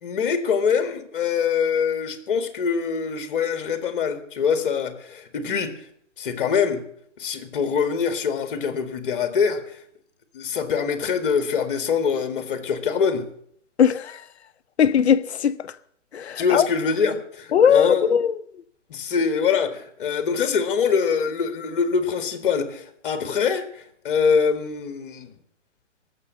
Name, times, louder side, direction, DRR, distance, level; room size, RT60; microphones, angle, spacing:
voice 1, 0.0-5.8 6.2-6.8 7.2-9.6 10.3-13.3 16.4-18.1 18.9-25.3, left 6 dB, 45° left, 1.9 m, -24 dB
voice 2, 13.8-14.2 14.8-15.6 16.1-16.7 17.5-18.3, left 8 dB, 60° left, 0.8 m, -19 dB
17.5 x 7.4 x 7.5 m
hypercardioid pair, 145°, 37 cm